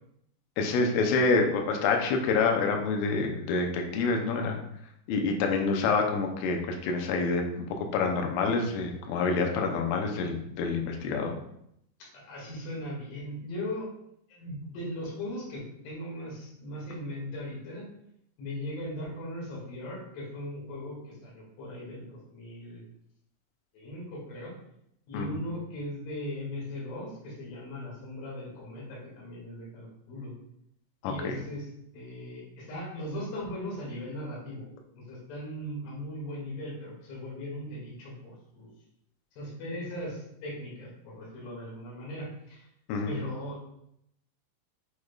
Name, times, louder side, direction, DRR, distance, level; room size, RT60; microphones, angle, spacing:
voice 1, 0.6-4.6 5.1-11.3 25.1-25.4 31.0-31.4 42.9-43.1, left 4 dB, 80° left, 2 dB, 3.2 m, -27 dB
voice 2, 12.1-13.9 14.3-17.9 18.4-22.8 23.7-24.5 25.1-30.3 31.0-34.7 35.0-38.7 39.3-42.6 43.1-43.6, left 1 dB, 60° left, -6 dB, 3.9 m, -38 dB
8.4 x 4.7 x 2.4 m, 0.76 s
omnidirectional pair, 6.0 m